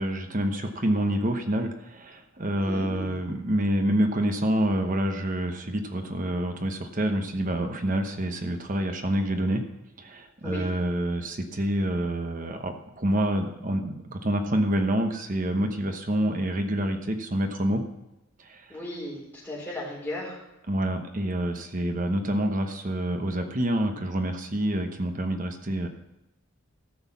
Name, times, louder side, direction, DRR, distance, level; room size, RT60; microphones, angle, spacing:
voice 1, 0.0-9.6 10.0-17.8 18.4-18.7 20.7-25.9, right 1 dB, 35° right, 5 dB, 1.0 m, -27 dB
voice 2, 2.6-3.2 10.4-10.7 18.7-20.4, left 1 dB, 10° left, -4 dB, 4.1 m, -36 dB
14.0 x 6.4 x 7.2 m, 0.94 s
head